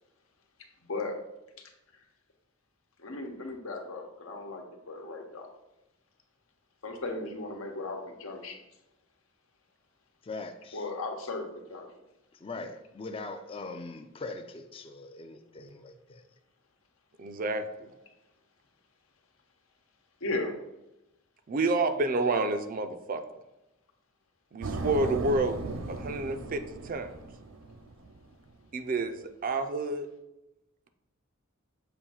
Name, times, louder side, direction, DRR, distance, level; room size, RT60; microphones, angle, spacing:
voice 1, 3.0-5.5 6.8-8.6 10.7-11.9 20.2-20.5, left 2 dB, 85° left, 3 dB, 1.0 m, -36 dB
voice 2, 10.2-10.8 12.4-16.2, left 3 dB, 25° left, 6 dB, 0.4 m, -41 dB
voice 3, 17.2-17.9 21.5-23.2 24.5-25.6 25.9-27.1 28.7-30.1, right 2 dB, 40° right, 9 dB, 0.5 m, -29 dB
sound 1, 24.6-28.3, right 2 dB, 90° right, 0.6 m, -37 dB
6.9 x 2.6 x 5.5 m, 0.93 s
head